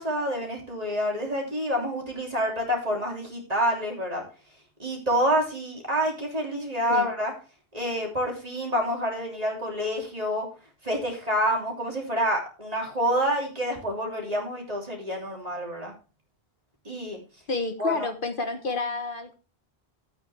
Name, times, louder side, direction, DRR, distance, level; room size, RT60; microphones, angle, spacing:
voice 1, 0.0-4.2 4.8-7.3 7.7-10.5 10.8-15.9 16.8-17.2 17.8-18.1, equal, 40° right, 0 dB, 3.0 m, -28 dB
voice 2, 17.5-19.3, left 4 dB, 55° left, 7 dB, 1.3 m, -29 dB
12.5 x 8.5 x 3.4 m, 0.34 s
omnidirectional pair, 1.0 m